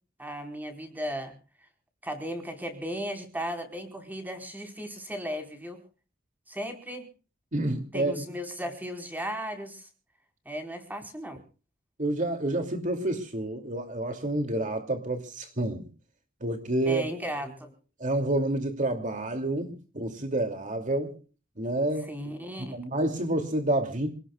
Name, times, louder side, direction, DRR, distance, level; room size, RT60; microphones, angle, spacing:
voice 1, 0.2-1.4 2.0-5.8 6.5-7.1 7.9-9.9 10.4-11.4 16.8-17.7 22.1-22.7, equal, 10° right, 4 dB, 4.7 m, -36 dB
voice 2, 7.5-8.1 12.0-15.9 16.4-17.0 18.0-21.1 21.6-22.1 22.6-24.1, right 1 dB, 40° right, 5 dB, 2.8 m, -29 dB
28.5 x 19.5 x 2.4 m, 0.38 s
head